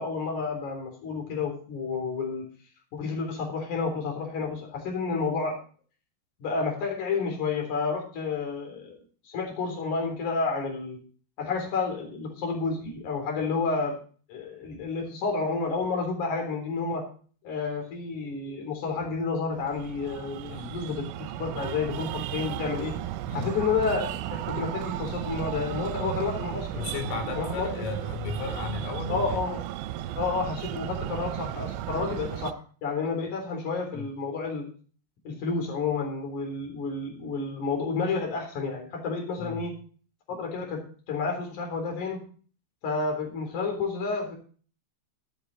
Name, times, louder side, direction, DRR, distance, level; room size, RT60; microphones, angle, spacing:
voice 1, 0.0-2.4 2.9-5.6 6.4-9.0 9.2-11.0 11.4-13.9 14.3-17.1 17.4-21.1 21.4-22.9 23.3-26.8 27.4-27.7 29.1-29.6 30.1-34.7 35.2-39.7 40.3-42.2 42.8-44.4, left 4 dB, 40° left, 1 dB, 4.7 m, -30 dB
Breathing, 19.5-32.5, right 12 dB, 80° right, 3.3 m, -34 dB
voice 2, 20.4-20.8 23.2-23.5 26.8-29.4 33.9-34.1 39.4-39.6, left 6 dB, 75° left, 2 dB, 4.8 m, -35 dB
13.0 x 9.7 x 4.2 m, 0.41 s
omnidirectional pair, 5.9 m